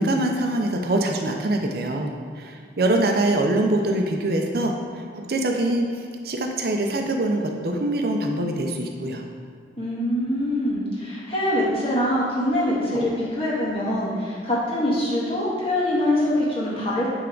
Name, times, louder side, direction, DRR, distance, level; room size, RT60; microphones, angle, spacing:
voice 1, 0.0-9.2, right 1 dB, 55° right, 2 dB, 0.5 m, -24 dB
voice 2, 9.8-17.1, left 1 dB, 30° left, -7 dB, 1.6 m, -24 dB
9.0 x 3.4 x 3.9 m, 2.1 s
head